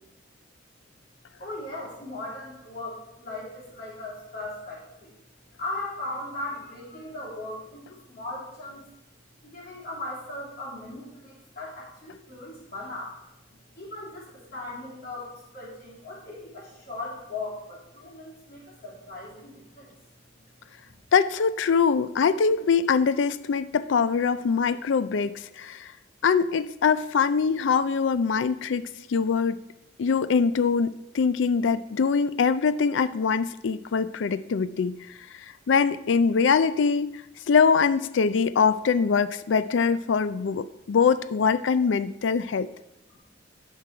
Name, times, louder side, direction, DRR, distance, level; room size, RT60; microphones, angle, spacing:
voice 1, 1.4-5.1 5.6-8.8 9.4-13.1 13.8-19.9 20.3-20.5 20.8-20.9 43.1-43.2, left 2 dB, 50° left, -5 dB, 3.1 m, -38 dB
voice 2, 21.1-25.9 26.2-29.6 30.0-34.9 35.7-37.1 37.5-42.7, left 5 dB, 70° left, 15 dB, 0.4 m, -23 dB
11.0 x 4.7 x 4.7 m, 0.90 s
head